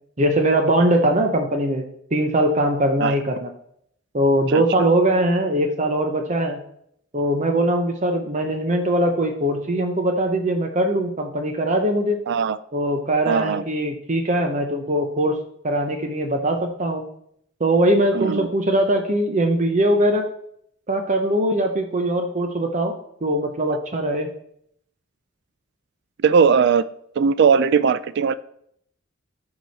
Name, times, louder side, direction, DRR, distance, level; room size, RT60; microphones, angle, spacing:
voice 1, 0.2-1.8 2.1-3.5 4.1-6.6 7.1-12.2 12.7-15.4 15.6-17.1 17.6-20.3 20.9-22.9 23.2-24.3, right 1 dB, 35° right, 4 dB, 0.8 m, -21 dB
voice 2, 12.3-12.6 13.3-13.6 18.1-18.5 26.2-26.8 27.2-28.3, right 6 dB, 55° right, 15 dB, 0.4 m, -18 dB
13.5 x 4.9 x 4.1 m, 0.71 s
head